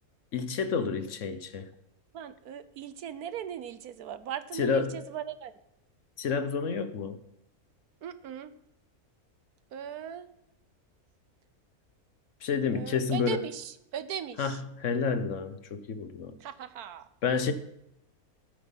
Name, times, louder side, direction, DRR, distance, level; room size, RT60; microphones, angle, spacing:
voice 1, 0.3-1.7 4.6-5.0 6.2-7.2 12.4-13.4 14.4-16.4 17.2-17.5, left 5 dB, 60° left, 11 dB, 1.2 m, -29 dB
voice 2, 2.1-5.5 8.0-8.5 9.7-10.3 12.7-14.6 16.4-17.1, right 9 dB, 85° right, 13 dB, 1.4 m, -39 dB
14.0 x 8.4 x 5.5 m, 0.82 s
omnidirectional pair, 1.6 m